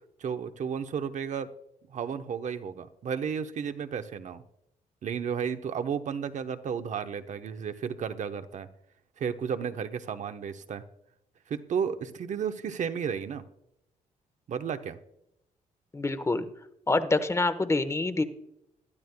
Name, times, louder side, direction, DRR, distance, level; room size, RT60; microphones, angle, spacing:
voice 1, 0.2-1.5 1.9-4.4 5.0-8.7 9.2-10.8 11.5-13.4 14.5-15.0, right 7 dB, 60° right, 8 dB, 1.0 m, -33 dB
voice 2, 15.9-16.5 16.9-18.2, left 2 dB, 20° left, 11 dB, 1.1 m, -26 dB
22.0 x 12.5 x 2.3 m, 0.80 s
cardioid pair, 100°, 14 cm